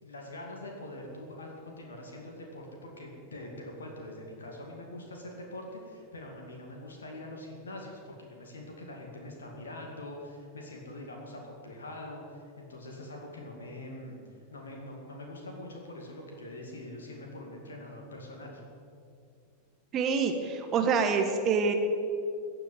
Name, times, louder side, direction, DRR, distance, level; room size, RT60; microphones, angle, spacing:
voice 1, 0.0-14.2 14.5-18.6, left 1 dB, 70° left, 0 dB, 2.2 m, -44 dB
voice 2, 19.9-21.7, right 5 dB, 30° right, 6 dB, 1.3 m, -26 dB
15.5 x 6.9 x 9.6 m, 2.4 s
figure-of-eight pair, 90°, 0 cm